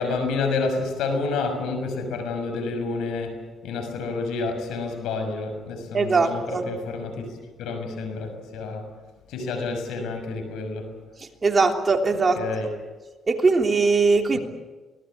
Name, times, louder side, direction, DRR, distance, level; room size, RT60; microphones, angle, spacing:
voice 1, 0.0-7.3 7.6-8.9 9.3-10.9 12.4-12.7 14.3-14.4, left 3 dB, 90° left, 7 dB, 6.2 m, -29 dB
voice 2, 5.9-6.6 11.4-12.4 13.3-14.4, right 4 dB, 35° right, 3 dB, 3.3 m, -20 dB
24.5 x 19.5 x 8.7 m, 1.3 s
cardioid pair, 90°, 0 cm